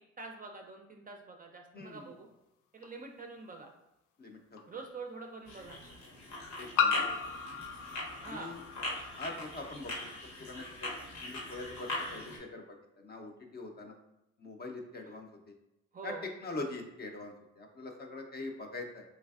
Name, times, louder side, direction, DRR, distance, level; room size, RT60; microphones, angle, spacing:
voice 1, 0.2-2.3 2.7-3.7 4.7-5.8 8.2-8.6 15.9-16.3, right 4 dB, 30° right, 3 dB, 0.4 m, -45 dB
voice 2, 1.7-2.0 4.2-4.7 6.6-7.1 8.2-8.6 9.2-10.1 10.4-10.9 11.2-12.6 13.0-13.9 14.4-15.3 16.0-19.0, left 2 dB, 35° left, 3 dB, 0.5 m, -43 dB
sound 1, 2.8-2.9 4.6-4.7 6.8-9.3, left 7 dB, 80° left, 0.5 m, -33 dB
sound 2, 5.5-12.4, left 1 dB, 65° left, 1.0 m, -41 dB
3.3 x 3.2 x 2.3 m, 0.87 s
cardioid pair, 90°, 30 cm